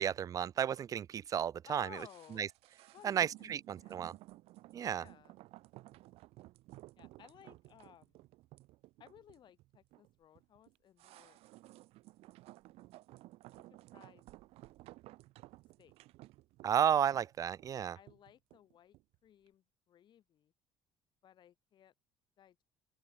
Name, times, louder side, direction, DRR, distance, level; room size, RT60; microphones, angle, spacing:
voice 1, 0.0-2.0 2.4-2.5 3.0-4.1 4.7-5.0 16.6-18.0, right 9 dB, 35° right, 0.4 m, -33 dB
voice 2, 1.6-2.4 2.9-3.5 3.8-4.1 4.9-5.3 7.0-8.2 9.0-11.4 13.7-14.2 15.8-15.9 17.1-17.2 17.9-19.0 19.2-20.5 21.2-21.9 22.4-22.6, left 10 dB, 50° left, 3.2 m, -58 dB
sound 1, 1.9-19.2 19.5-19.6, right 18 dB, 80° right, 1.5 m, -56 dB
open air
cardioid pair, 140°, 10 cm